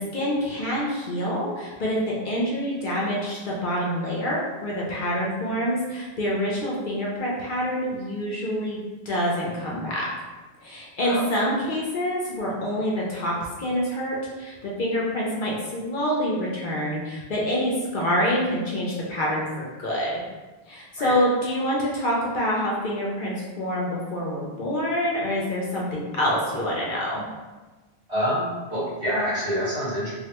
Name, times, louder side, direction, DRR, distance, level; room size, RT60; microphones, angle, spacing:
voice 1, 0.0-8.8 9.1-10.1 10.6-20.2 20.7-27.2, equal, 55° left, -5 dB, 0.7 m, -26 dB
voice 2, 28.1-30.1, equal, 60° right, -11 dB, 1.8 m, -27 dB
3.2 x 2.3 x 2.8 m, 1.2 s
omnidirectional pair, 1.1 m